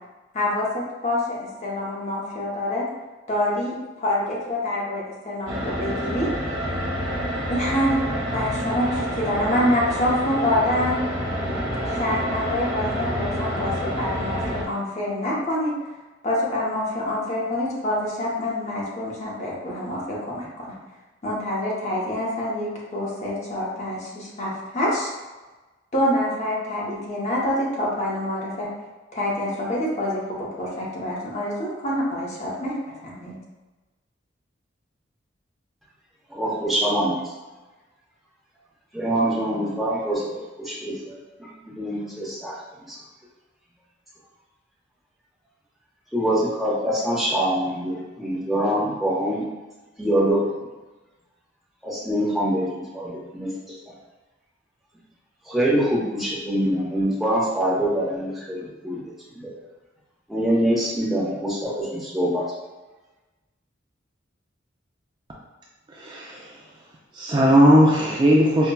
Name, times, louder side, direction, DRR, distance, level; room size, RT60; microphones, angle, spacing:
voice 1, 0.3-2.9 3.3-6.3 7.5-7.9 8.3-11.0 11.9-15.7 16.2-20.8 21.2-25.1 25.9-28.7 29.1-32.8 33.0-33.4, left 1 dB, 35° left, -5 dB, 0.8 m, -26 dB
sound 1, 5.5-14.6, equal, 80° right, 0.9 m, -28 dB
voice 2, 36.3-37.2 38.9-42.6 42.9-43.0 46.1-49.4 50.0-50.4 51.8-53.9 55.5-59.5 60.3-62.4, right 1 dB, ahead, -7 dB, 0.8 m, -25 dB
voice 3, 65.9-66.6 67.1-68.7, equal, 25° right, -3 dB, 0.4 m, -18 dB
5.4 x 2.2 x 2.2 m, 1.2 s
head